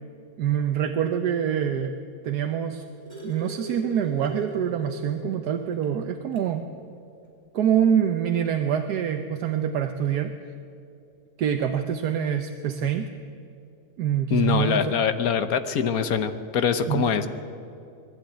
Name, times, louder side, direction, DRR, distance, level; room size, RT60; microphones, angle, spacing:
voice 1, 0.4-1.9 2.2-2.8 3.2-6.6 7.5-10.3 11.4-13.1 14.0-14.9 16.9-17.1, right 9 dB, 80° right, 6 dB, 1.4 m, -25 dB
sound 1, 2.5-5.4 5.8-5.9 6.3-6.5 7.6-7.7, equal, 25° right, 3.6 m, -39 dB
voice 2, 14.3-17.3, left 7 dB, 65° left, 10 dB, 1.4 m, -24 dB
19.5 x 14.5 x 9.1 m, 2.5 s
omnidirectional pair, 1.7 m